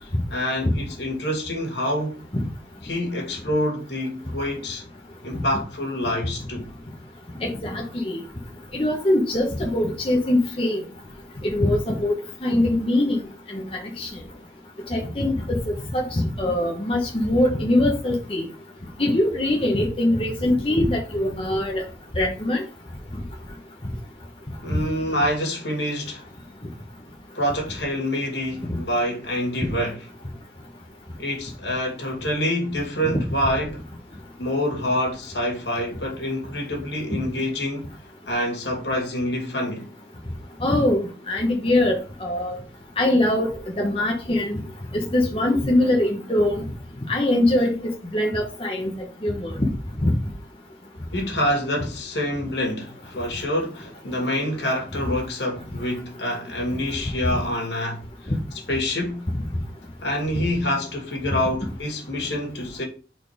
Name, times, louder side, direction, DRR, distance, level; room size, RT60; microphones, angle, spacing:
voice 1, 0.0-2.2 2.8-4.8 5.2-6.7 24.6-26.2 27.3-30.1 31.2-33.8 34.4-37.9 38.3-39.9 51.1-58.3 58.7-59.3 60.0-62.8, left 1 dB, 75° left, 2.4 m, -26 dB
voice 2, 7.4-8.2 8.7-10.8 11.4-12.1 12.4-13.2 13.5-13.6 14.0-14.1 14.9-15.6 15.9-18.4 19.0-21.8 22.2-22.6 40.6-42.6 43.0-43.5 43.8-44.6 44.9-46.6 47.1-47.7 48.1-48.9 49.2-49.7 50.0-50.1, left 1 dB, 30° left, 1.1 m, -22 dB
5.2 x 4.3 x 5.0 m
head